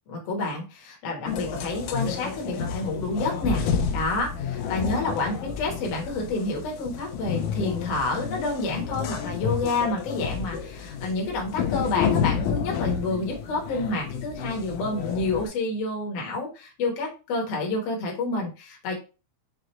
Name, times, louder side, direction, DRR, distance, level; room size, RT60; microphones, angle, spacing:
voice 1, 0.1-3.6 3.9-18.9, left 2 dB, 60° left, -1 dB, 2.0 m, -29 dB
sound 1, 1.3-15.5, left 7 dB, 80° left, 2.0 m, -30 dB
5.9 x 2.5 x 3.0 m, 0.32 s
omnidirectional pair, 3.3 m